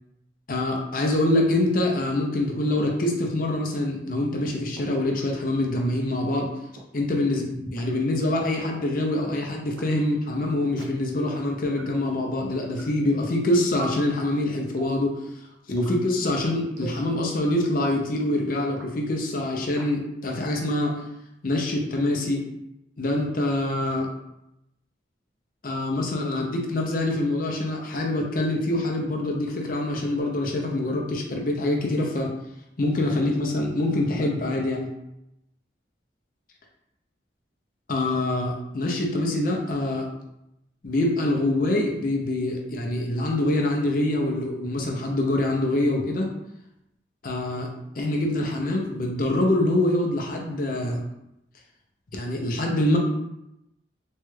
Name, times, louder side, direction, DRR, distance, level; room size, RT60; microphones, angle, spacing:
voice 1, 0.5-6.5 6.9-15.1 15.7-20.9 21.4-22.4 23.0-24.1 25.6-32.3 32.8-34.9 37.9-40.1 40.8-46.3 47.2-47.7 48.0-51.0 52.1-53.0, left 1 dB, 50° left, 0 dB, 0.5 m, -25 dB
sound 1, 2.8-2.9 3.8-3.9 4.8-4.9 5.8-5.9 6.8-6.9 7.8-7.9 8.8-8.9 9.8-9.9 10.8-10.9 11.8-11.9 12.8-12.9 13.8-14.0 14.8-15.0 15.8-16.0 16.8-17.0 17.8-18.0 18.8-18.9 19.8-19.9, right 4 dB, 85° right, 0.6 m, -41 dB
3.1 x 2.3 x 3.1 m, 0.85 s
head